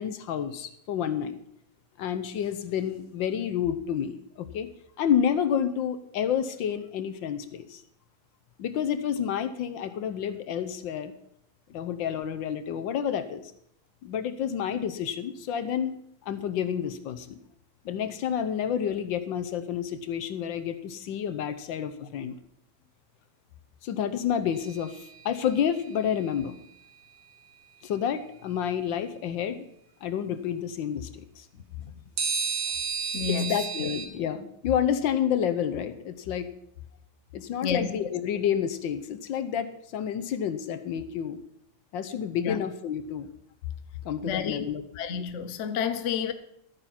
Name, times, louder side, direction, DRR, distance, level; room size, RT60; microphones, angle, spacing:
voice 1, 0.0-1.4 2.0-4.7 5.0-7.8 8.6-11.1 11.7-13.5 14.0-17.4 17.8-22.3 23.8-26.6 27.8-29.6 30.0-31.5 33.3-36.5 37.3-41.4 41.9-43.3 44.0-44.8, left 8 dB, 70° left, 10 dB, 1.5 m, -29 dB
Single Triangle Hits soft medium loud, 24.5-25.8 32.2-34.1, right 5 dB, 60° right, 2.0 m, -32 dB
voice 2, 33.1-33.5 33.8-33.9 37.6-37.9 42.4-42.6 44.2-44.6 45.0-46.3, left 7 dB, 50° left, 10 dB, 0.9 m, -30 dB
13.0 x 9.0 x 5.8 m, 0.69 s
omnidirectional pair, 2.2 m